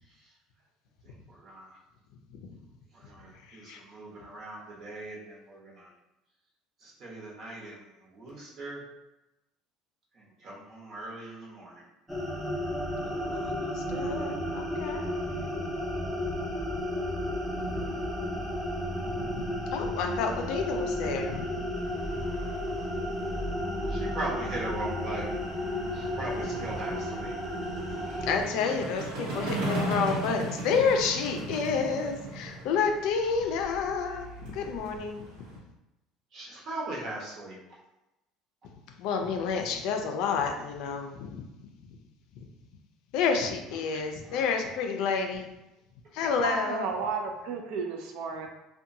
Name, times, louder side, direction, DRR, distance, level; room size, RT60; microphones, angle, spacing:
voice 1, 1.0-1.8 2.9-5.9 6.8-8.8 10.1-11.9 23.9-27.4 27.8-28.3 33.3-33.5 36.3-37.6, right 2 dB, 45° right, -4 dB, 0.9 m, -40 dB
voice 2, 3.5-3.8 13.0-15.0 15.3-15.5 17.6-17.9 19.2-21.4 28.2-35.3 39.0-41.5 43.1-45.5 46.1-46.9, left 5 dB, 70° left, 4 dB, 0.4 m, -30 dB
sound 1, 12.1-28.4, left 1 dB, 5° right, 0.5 m, -33 dB
sound 2, 21.7-35.6, right 2 dB, 90° right, 0.9 m, -39 dB
voice 3, 46.4-48.5, right 5 dB, 70° right, 3 dB, 0.4 m, -32 dB
2.7 x 2.2 x 2.6 m, 0.96 s
cardioid pair, 135°, 0 cm